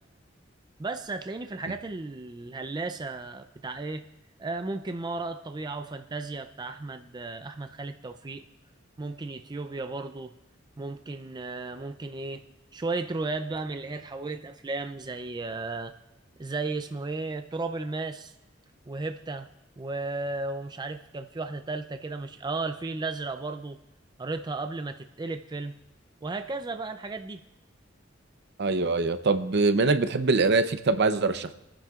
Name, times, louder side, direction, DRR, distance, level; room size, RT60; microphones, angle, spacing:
voice 1, 0.8-4.0 4.4-8.4 9.0-10.3 10.8-12.5 12.7-15.9 16.4-18.3 18.9-19.5 19.8-23.8 24.2-25.7 26.2-27.4, right 3 dB, 20° right, 7 dB, 0.4 m, -34 dB
voice 2, 28.6-31.5, right 3 dB, 60° right, 10 dB, 0.7 m, -23 dB
30.0 x 10.0 x 2.4 m, 0.94 s
head